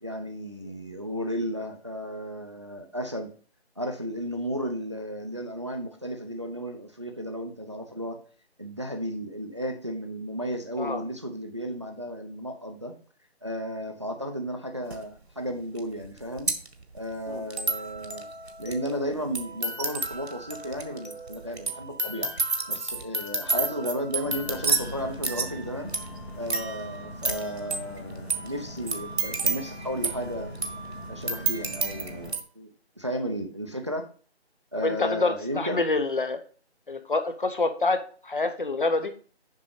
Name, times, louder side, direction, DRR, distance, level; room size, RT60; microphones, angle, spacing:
voice 1, 0.0-3.3 3.8-8.2 8.6-12.9 13.4-16.5 16.9-18.3 18.6-22.3 22.7-25.9 26.4-30.5 31.1-32.7 33.0-34.1 34.7-35.8, equal, 25° right, 4 dB, 0.7 m, -34 dB
sound 1, 14.9-15.0 15.8-32.4, right 3 dB, 70° right, 1.6 m, -31 dB
sound 2, 24.2-32.3, left 1 dB, 65° left, 2.4 m, -41 dB
voice 2, 34.8-36.4 36.9-39.1, left 3 dB, 50° left, 8 dB, 1.1 m, -27 dB
7.1 x 5.4 x 5.0 m, 0.40 s
figure-of-eight pair, 170°, 33 cm